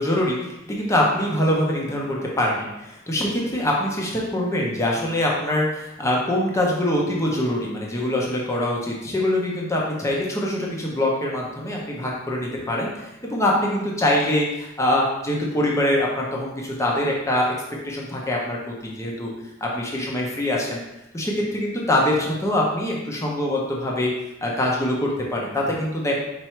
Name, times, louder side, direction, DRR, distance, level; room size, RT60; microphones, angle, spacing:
voice 1, 0.0-2.5 3.1-18.6 18.8-19.3 19.6-20.8 21.1-24.1 24.4-26.2, left 1 dB, 15° left, -3 dB, 0.7 m, -24 dB
4.4 x 2.6 x 4.4 m, 0.91 s
head